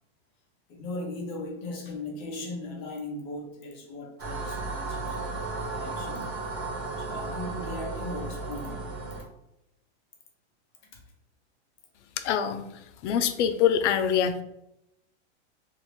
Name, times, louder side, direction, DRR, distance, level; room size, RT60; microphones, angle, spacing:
voice 1, 0.7-6.3 7.0-8.9 10.9-11.0, left 2 dB, 30° left, 1 dB, 0.6 m, -38 dB
sound 1, 4.2-9.2, right 3 dB, 20° right, 0.3 m, -34 dB
voice 2, 12.2-12.6 13.0-14.4, left 8 dB, 80° left, 9 dB, 0.5 m, -24 dB
2.9 x 2.5 x 3.2 m, 0.83 s
supercardioid pair, 165°, 35 cm